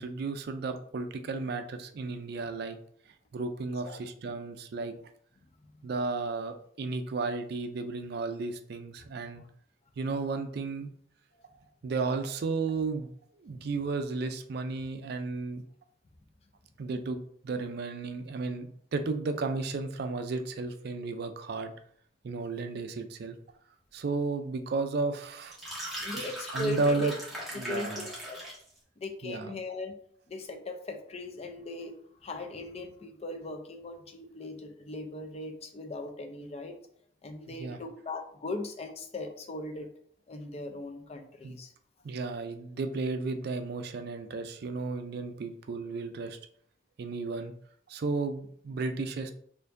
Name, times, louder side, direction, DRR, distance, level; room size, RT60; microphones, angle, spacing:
voice 1, 0.0-2.8 3.3-4.9 5.8-9.4 10.0-10.9 11.8-13.1 13.4-15.6 16.8-17.2 17.4-21.7 22.2-23.4 23.9-25.6 26.5-27.1 27.6-28.1 29.2-29.5 37.6-37.8 40.7-40.8 41.4-41.6 42.0-46.4 47.0-47.5 47.9-49.3, right 3 dB, 60° right, 8 dB, 0.4 m, -33 dB
sound 1, 25.4-28.7, equal, ahead, 1.2 m, -39 dB
voice 2, 26.0-27.1 27.5-28.4 29.0-29.9 30.3-31.9 32.2-36.8 37.2-39.9 40.3-41.7, left 2 dB, 35° left, 5 dB, 0.5 m, -39 dB
4.4 x 2.6 x 2.5 m, 0.62 s
head